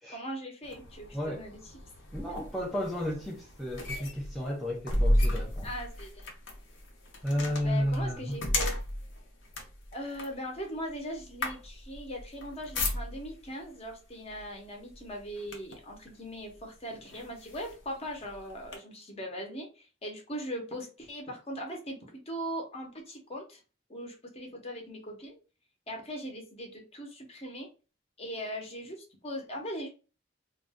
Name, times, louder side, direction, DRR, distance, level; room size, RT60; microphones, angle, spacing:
voice 1, 0.1-1.6 5.6-6.3 7.4-8.8 9.9-23.6 23.9-25.4 25.9-27.7 28.2-29.9, equal, 35° left, 0.8 m, -40 dB
sound 1, 0.6-13.5 14.3-14.5 14.9-15.9 16.6-16.7 17.1-18.8, left 1 dB, 80° left, 0.7 m, -34 dB
voice 2, 1.1-1.5 2.1-5.7 7.2-8.5, equal, ahead, 0.4 m, -32 dB
2.5 x 2.2 x 3.3 m
head